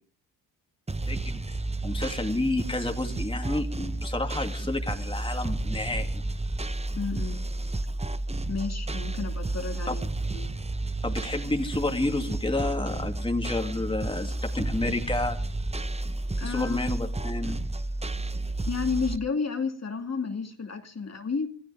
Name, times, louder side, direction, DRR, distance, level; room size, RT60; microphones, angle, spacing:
sound 1, 0.9-19.2, right 2 dB, 15° right, 0.9 m, -31 dB
voice 1, 1.1-6.2 9.9-10.0 11.0-15.4 16.4-17.6, left 2 dB, 10° left, 2.6 m, -30 dB
voice 2, 7.0-7.4 8.5-10.5 16.4-16.8 18.7-21.5, left 5 dB, 35° left, 2.6 m, -31 dB
25.5 x 16.0 x 3.5 m
cardioid pair, 80°, 45 cm